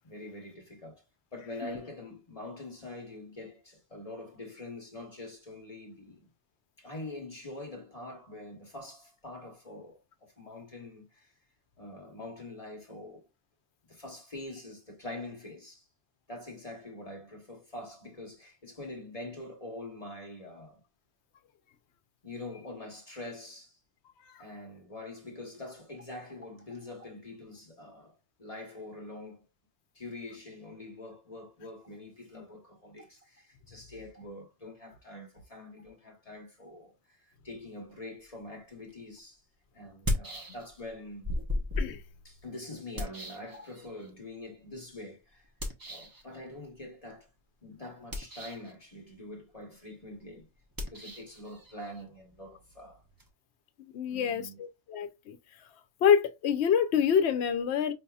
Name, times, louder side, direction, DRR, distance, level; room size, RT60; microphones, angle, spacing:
voice 1, 0.0-1.0 1.3-6.3 6.8-11.3 11.8-13.2 13.9-15.8 16.3-20.8 22.2-23.8 24.4-28.1 28.4-29.4 29.9-39.4 39.7-41.3 42.2-45.5 45.9-47.3 47.6-50.5 50.8-53.0 54.0-54.6, left 2 dB, 35° left, 1.2 m, -44 dB
sound 1, 38.9-39.0 39.9-40.9 41.2-44.1 45.6-46.2 48.0-48.7 50.7-53.3, left 1 dB, 25° right, 0.6 m, -36 dB
voice 2, 53.9-55.4 56.0-57.9, left 8 dB, 75° left, 0.9 m, -26 dB
5.3 x 2.7 x 2.3 m
omnidirectional pair, 1.2 m